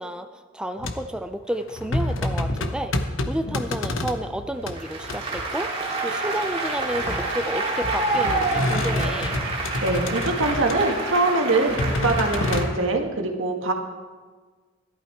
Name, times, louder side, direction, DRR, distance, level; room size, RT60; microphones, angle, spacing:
voice 1, 0.0-3.0 3.3-5.7 6.0-9.4, right 1 dB, 5° right, 7 dB, 0.4 m, -31 dB
sound 1, 0.8-1.2 1.5-4.7 5.0-5.4 6.5-7.5 7.8-11.0 11.5-12.7, left 1 dB, 75° left, 1.0 m, -28 dB
Applause, 4.7-12.7, right 2 dB, 30° right, 2.5 m, -28 dB
voice 2, 9.8-11.8 12.0-13.7, right 2 dB, 75° right, 3 dB, 1.7 m, -23 dB
14.0 x 12.0 x 4.5 m, 1.5 s
head